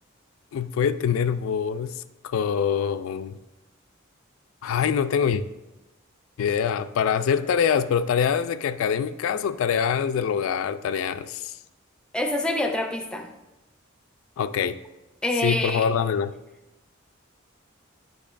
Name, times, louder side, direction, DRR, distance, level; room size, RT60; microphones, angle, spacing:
voice 1, 0.5-3.4 4.6-5.4 6.4-11.5 14.4-14.8 15.4-16.3, left 7 dB, 85° left, 13 dB, 0.3 m, -24 dB
voice 2, 12.1-13.3 15.2-15.9, left 1 dB, 5° left, 5 dB, 0.4 m, -26 dB
8.7 x 5.2 x 2.5 m, 1.0 s
head